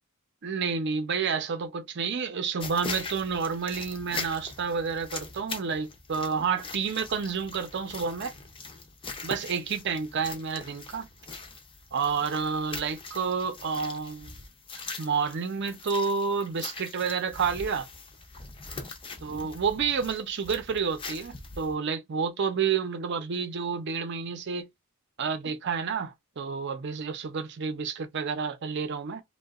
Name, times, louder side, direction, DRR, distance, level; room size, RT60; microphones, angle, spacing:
voice 1, 0.4-8.3 9.2-11.1 11.9-14.3 15.0-17.9 19.2-24.7 25.2-29.2, right 5 dB, 55° right, 0.5 m, -30 dB
sound 1, 2.6-21.7, left 4 dB, 25° left, 0.5 m, -42 dB
2.7 x 2.1 x 2.3 m
head